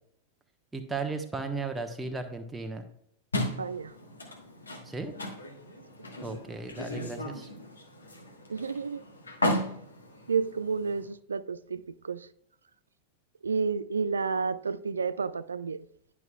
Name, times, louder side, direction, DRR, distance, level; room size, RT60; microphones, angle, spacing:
voice 1, 0.7-2.8 4.8-5.1 6.2-7.5, right 3 dB, 10° right, 1.0 m, -35 dB
sound 1, 3.3-11.1, left 1 dB, 75° left, 1.2 m, -35 dB
voice 2, 3.3-3.9 8.5-9.0 10.3-12.3 13.4-15.8, right 5 dB, 75° right, 0.3 m, -31 dB
11.0 x 5.9 x 2.3 m
figure-of-eight pair, 90°, 0 cm